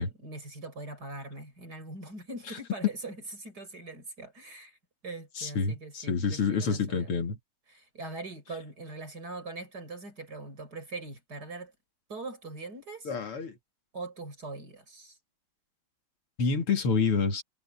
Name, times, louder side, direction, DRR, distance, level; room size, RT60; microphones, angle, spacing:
voice 1, 0.0-4.8 5.0-7.1 7.7-11.7 12.1-13.1 13.9-15.2, right 2 dB, 45° right, 6.8 m, -42 dB
voice 2, 5.4-7.4 13.1-13.6 16.4-17.4, left 5 dB, 80° left, 3.4 m, -28 dB
omnidirectional pair, 2.4 m